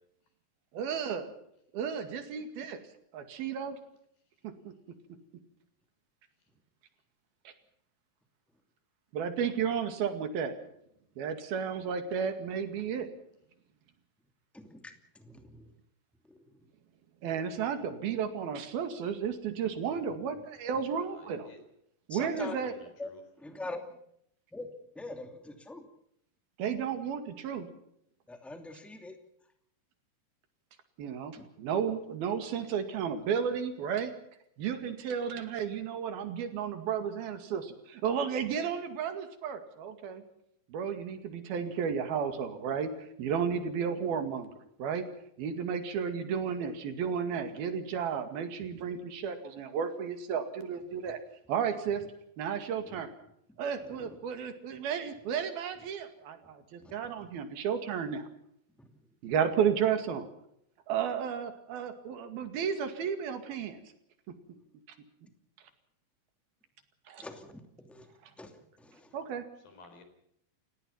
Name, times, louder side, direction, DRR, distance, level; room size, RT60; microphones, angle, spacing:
voice 1, 0.7-1.3 1.7-2.8 3.1-3.8 4.4-4.7 7.5-7.6 9.1-10.6 11.2-13.1 17.2-21.5 22.1-22.7 26.6-27.7 31.0-34.1 34.6-40.2 40.7-44.5 44.8-45.1 45.4-51.2 51.5-52.0 52.4-53.1 53.6-58.2 59.2-60.3 60.9-63.8 67.1-67.2 69.1-69.4, right 7 dB, 90° right, 8 dB, 4.1 m, -33 dB
voice 2, 14.5-14.9 15.2-15.6 22.1-22.6 23.0-23.1 23.4-23.8 24.5-24.7 24.9-25.8 28.3-29.1 31.4-31.5 54.0-54.1 56.8-56.9 67.2-68.0 68.4-69.0, left 2 dB, ahead, 6 dB, 1.8 m, -43 dB
voice 3, 21.0-21.6 22.4-23.2 69.6-70.0, left 5 dB, 75° left, 7 dB, 5.8 m, -49 dB
30.0 x 17.0 x 5.8 m, 0.73 s
omnidirectional pair, 4.2 m